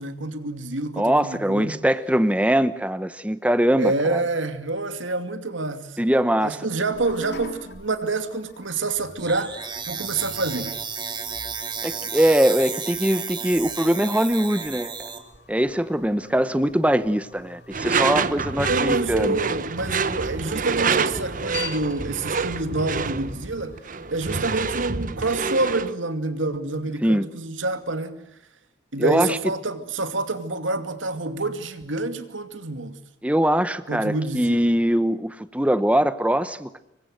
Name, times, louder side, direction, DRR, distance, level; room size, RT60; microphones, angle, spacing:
voice 1, 0.0-1.8 3.8-6.1 6.4-10.8 18.7-23.8 24.1-28.2 28.9-33.0 33.9-34.7, right 3 dB, 85° right, 2.6 m, -27 dB
voice 2, 1.0-4.2 6.0-6.6 11.8-15.1 15.5-19.4 27.0-27.3 29.0-29.4 33.2-36.8, equal, 5° right, 0.9 m, -22 dB
sound 1, 6.9-24.8, left 3 dB, 60° left, 2.3 m, -45 dB
sound 2, 9.2-15.2, right 6 dB, 25° right, 3.2 m, -32 dB
Door / Screech, 17.7-25.9, right 4 dB, 45° right, 1.0 m, -27 dB
27.0 x 23.5 x 7.9 m
head